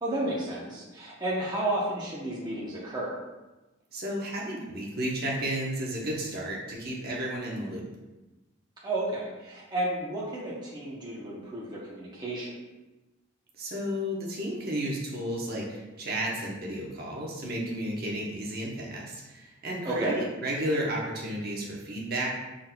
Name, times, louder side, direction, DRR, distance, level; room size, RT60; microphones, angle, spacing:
voice 1, 0.0-3.1 8.8-12.6 19.8-20.2, right 1 dB, 20° right, -6 dB, 0.7 m, -32 dB
voice 2, 3.9-7.8 13.6-22.3, right 1 dB, 50° right, -2 dB, 0.9 m, -32 dB
6.0 x 3.9 x 2.2 m, 1.1 s
head